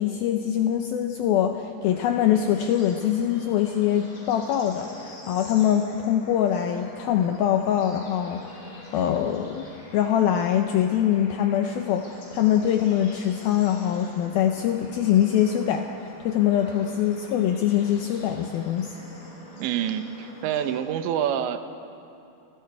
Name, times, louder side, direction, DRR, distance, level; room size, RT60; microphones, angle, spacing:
voice 1, 0.0-9.7 9.9-15.9 16.2-18.9, left 10 dB, 85° left, 5 dB, 2.1 m, -23 dB
Bird / Insect / Frog, 1.8-20.7, left 2 dB, 55° left, 6.5 m, -45 dB
voice 2, 19.6-21.6, right 9 dB, 80° right, 8 dB, 3.1 m, -27 dB
29.0 x 20.0 x 4.8 m, 2.8 s
omnidirectional pair, 5.4 m